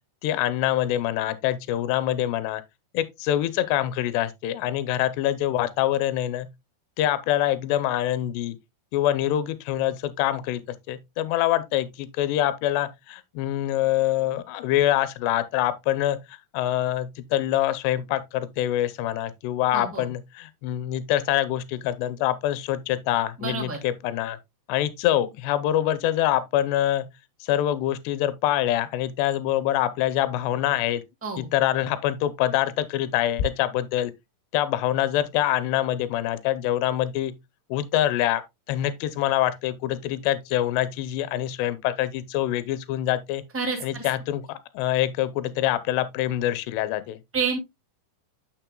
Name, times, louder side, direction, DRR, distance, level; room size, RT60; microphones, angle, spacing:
voice 1, 0.2-2.6 2.9-6.5 7.0-8.6 8.9-10.6 10.9-24.4 24.7-27.1 27.4-31.0 31.4-34.1 34.5-37.3 37.7-38.4 38.7-43.4 43.8-47.2, left 13 dB, 85° left, 2.8 m, -25 dB
voice 2, 19.7-20.1 23.4-23.8 31.2-31.5 43.5-44.1 47.3-47.6, right 5 dB, 5° right, 1.0 m, -29 dB
9.0 x 6.4 x 2.2 m
omnidirectional pair, 4.8 m